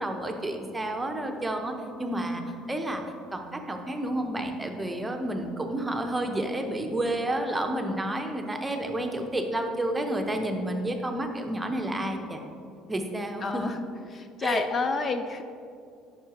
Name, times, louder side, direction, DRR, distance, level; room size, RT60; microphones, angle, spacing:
voice 1, 0.0-2.4 2.7-3.0 3.3-12.4 12.9-13.7 14.4-14.6, right 1 dB, 15° right, 4 dB, 0.7 m, -30 dB
voice 2, 13.4-15.4, left 4 dB, 35° left, 8 dB, 0.4 m, -30 dB
9.9 x 5.4 x 3.0 m, 2.4 s
cardioid pair, 105°, 0 cm